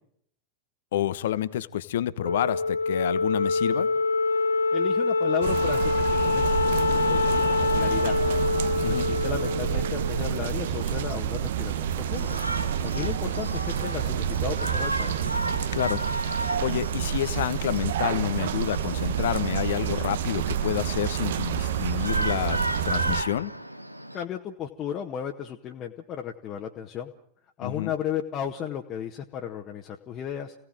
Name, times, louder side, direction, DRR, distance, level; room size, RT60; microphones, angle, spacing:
voice 1, 0.9-3.9 8.8-9.1 15.7-16.0 16.6-22.6 22.8-23.5 27.6-27.9, left 12 dB, 60° left, 15 dB, 1.1 m, -28 dB
Wind instrument woodwind instrument, 2.2-10.8, left 3 dB, 85° left, 1.5 m, -25 dB
voice 2, 4.7-5.9 6.2-8.1 8.8-12.4 12.8-15.3 24.1-27.1 27.6-30.5, left 9 dB, 30° left, 1 dB, 1.6 m, -34 dB
sound 1, 5.4-23.2, right 9 dB, 60° right, 1.1 m, -28 dB
Shout, 12.1-24.2, right 1 dB, 90° right, 1.2 m, -35 dB
28.0 x 18.0 x 7.7 m, 0.70 s
figure-of-eight pair, 90°, 0 cm